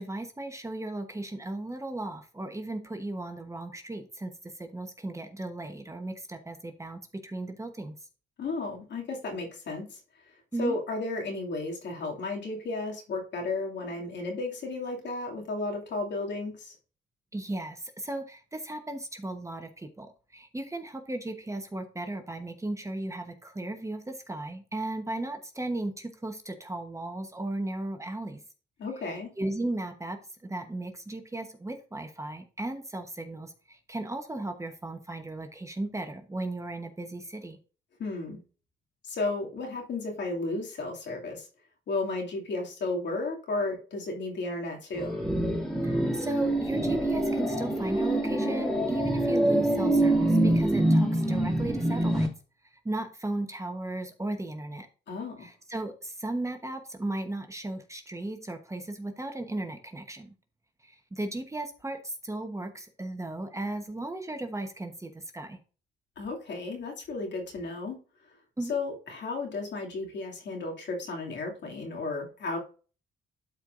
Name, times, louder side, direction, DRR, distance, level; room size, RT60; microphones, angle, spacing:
voice 1, 0.0-7.9 10.5-10.8 17.3-28.4 29.0-30.2 30.4-37.6 45.8-52.3 52.8-54.9 55.4-60.3 60.8-65.6 68.6-68.8, right 2 dB, 15° right, 6 dB, 1.1 m, -36 dB
voice 2, 8.4-10.0 10.6-16.7 28.8-29.3 38.0-38.4 39.0-41.5 41.9-45.2 55.1-55.5 66.2-68.0 68.7-72.6, left 3 dB, 65° left, 0 dB, 2.6 m, -33 dB
sound 1, 44.9-52.3, right 1 dB, 5° left, 2.4 m, -25 dB
12.5 x 4.6 x 2.6 m, 0.37 s
cardioid pair, 90°, 20 cm